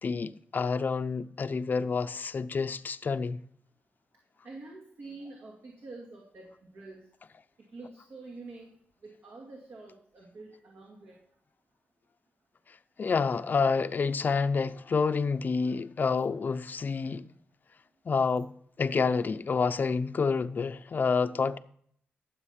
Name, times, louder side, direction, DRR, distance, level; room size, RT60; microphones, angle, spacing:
voice 1, 0.0-3.4 13.0-17.3 18.1-18.5 18.8-21.6, left 5 dB, 45° left, 0.7 m, -28 dB
voice 2, 4.4-7.0 7.7-8.7 9.0-11.2, right 3 dB, 65° right, 2.4 m, -46 dB
12.5 x 7.5 x 5.8 m
cardioid pair, 90°, 4 cm